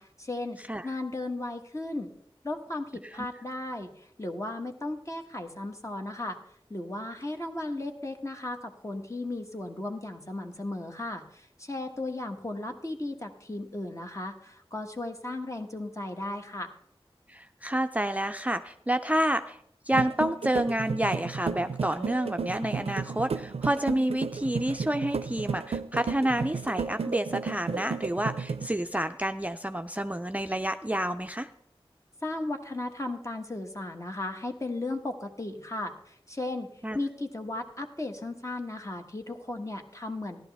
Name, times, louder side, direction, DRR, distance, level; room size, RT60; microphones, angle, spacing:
voice 1, 0.0-0.6 0.8-2.1 2.4-6.4 6.7-16.7 32.2-36.7 36.9-40.4, left 2 dB, 30° left, 4 dB, 1.3 m, -35 dB
voice 2, 17.3-19.6 19.9-31.5 36.8-37.0, right 1 dB, 15° right, 7 dB, 0.4 m, -29 dB
sound 1, 19.9-28.7, right 5 dB, 85° right, 0.4 m, -33 dB
14.0 x 11.5 x 3.4 m, 0.71 s
wide cardioid pair, 50°, 10 cm